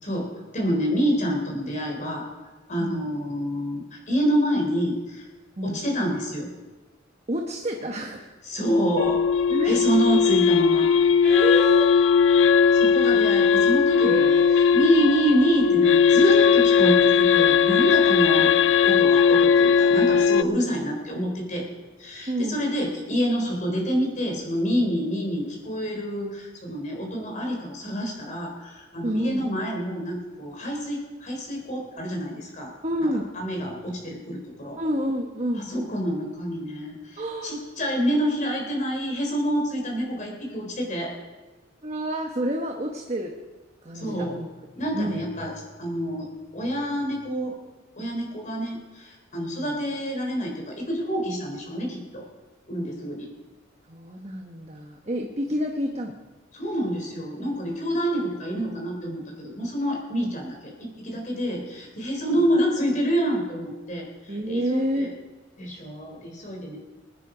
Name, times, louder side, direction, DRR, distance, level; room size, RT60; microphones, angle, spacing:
voice 1, 0.0-2.2 2.7-5.3 5.6-6.5 8.4-9.2 9.6-10.9 12.7-14.4 14.7-18.5 18.8-21.7 22.0-32.7 33.3-34.8 35.6-41.1 43.9-44.4 44.8-46.3 46.5-47.5 48.0-52.3 52.7-53.3 56.5-65.1 65.6-66.8, equal, 40° left, 1 dB, 3.6 m, -27 dB
voice 2, 7.3-8.3 9.5-9.8 11.2-12.0 14.0-14.6 22.3-22.6 29.0-29.5 32.8-33.3 34.8-35.6 37.2-37.6 41.8-43.4 43.8-44.5 44.9-45.3 49.5-49.7 53.9-56.2 60.2-60.3 62.3-62.5 64.3-65.1, equal, 35° right, 2 dB, 1.1 m, -29 dB
sound 1, 9.0-20.4, left 6 dB, 75° left, 0.4 m, -18 dB
21.5 x 9.7 x 5.0 m, 1.2 s
head